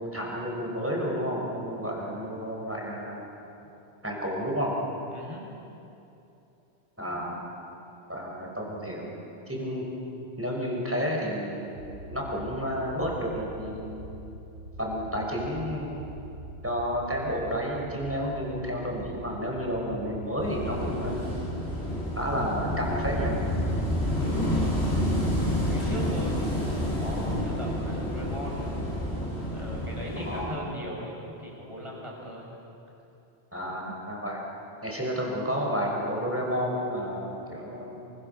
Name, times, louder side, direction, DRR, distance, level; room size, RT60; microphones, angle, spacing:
voice 1, 0.0-3.2 4.0-4.7 7.0-7.4 8.1-9.1 9.5-9.9 10.4-11.8 12.1-14.2 14.8-16.1 16.6-21.1 22.2-23.4 30.2-30.6 33.5-34.4 34.8-38.0, equal, 10° right, -2 dB, 5.8 m, -31 dB
voice 2, 5.1-5.5 24.2-24.6 25.7-29.0 29.5-32.5, equal, 30° right, -3 dB, 6.7 m, -39 dB
sound 1, 11.8-21.8, right 2 dB, 85° right, 1.6 m, -44 dB
Wind / Waves surf, 20.4-30.4, equal, 75° left, 8.3 m, -29 dB
27.5 x 25.0 x 6.9 m, 2.8 s
omnidirectional pair, 1.1 m